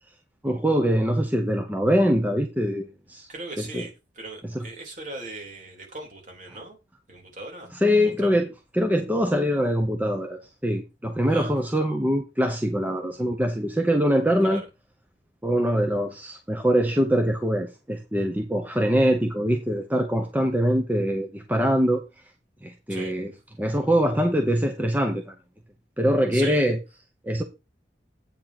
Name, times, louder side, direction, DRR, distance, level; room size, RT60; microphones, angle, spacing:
voice 1, 0.4-3.3 3.7-3.8 4.5-4.7 7.7-14.6 15.4-22.0 22.6-23.3 23.6-25.3 26.0-26.8 27.2-27.4, equal, 10° right, 0.9 m, -23 dB
voice 2, 3.3-6.8 7.1-7.7 8.0-8.4 11.3-11.5 14.4-14.7 22.9-23.1 26.3-26.6, right 2 dB, 45° right, 3.5 m, -39 dB
8.8 x 4.7 x 6.0 m
head